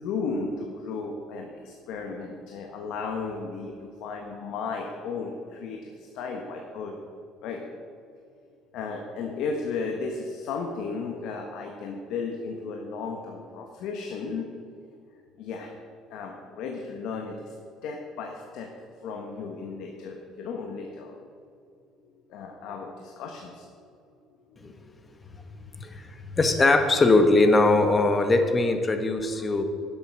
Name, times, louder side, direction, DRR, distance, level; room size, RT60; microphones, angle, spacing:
voice 1, 0.0-7.0 7.4-7.6 8.7-14.5 14.9-15.0 15.4-15.7 16.1-17.5 17.8-18.7 19.0-21.2 22.0-23.6 24.5-24.9, left 4 dB, 70° left, 1 dB, 1.2 m, -34 dB
voice 2, 25.8-29.6, left 2 dB, 20° left, 7 dB, 1.1 m, -21 dB
11.0 x 7.6 x 6.1 m, 2.3 s
cardioid pair, 120°, 0 cm